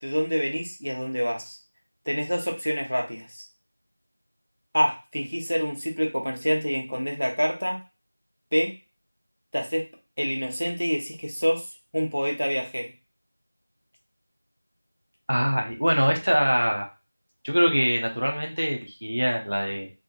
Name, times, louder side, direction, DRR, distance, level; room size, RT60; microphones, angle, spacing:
voice 1, 0.0-1.6 2.1-3.4 4.7-7.8 8.5-8.7 9.5-9.9 10.2-11.7 11.9-12.9, equal, 80° left, 1 dB, 1.0 m, -27 dB
voice 2, 15.3-16.9 17.4-19.9, equal, 40° right, 2 dB, 0.6 m, -23 dB
3.6 x 2.4 x 2.5 m, 0.28 s
figure-of-eight pair, 180°, 0 cm